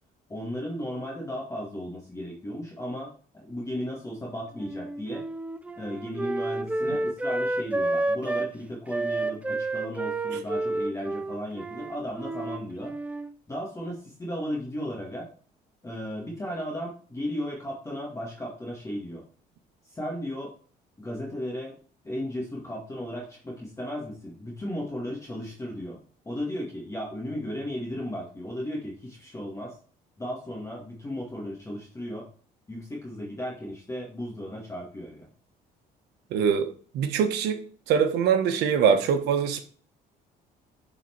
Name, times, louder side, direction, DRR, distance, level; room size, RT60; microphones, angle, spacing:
voice 1, 0.3-5.2 5.8-12.9 13.5-15.3 15.8-19.2 19.9-20.5 21.0-21.8 22.0-26.0 26.3-29.7 30.2-32.3 32.7-35.3, equal, 20° left, -2 dB, 1.9 m, -35 dB
Wind instrument woodwind instrument, 4.5-8.5 8.9-13.3, right 2 dB, 10° right, 0.5 m, -30 dB
voice 2, 36.3-37.6 37.9-39.6, right 7 dB, 85° right, 8 dB, 1.1 m, -23 dB
7.8 x 4.4 x 4.4 m, 0.42 s
cardioid pair, 110°, 17 cm